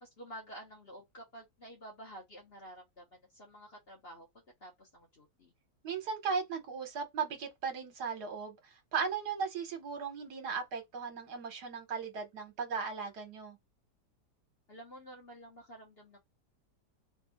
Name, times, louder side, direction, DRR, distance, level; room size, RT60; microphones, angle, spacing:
voice 1, 0.0-4.3 4.6-5.5 14.7-16.2, right 1 dB, 40° left, 1.1 m, -50 dB
voice 2, 5.8-13.6, right 5 dB, 65° right, 1.6 m, -37 dB
3.4 x 2.7 x 4.0 m
omnidirectional pair, 1.9 m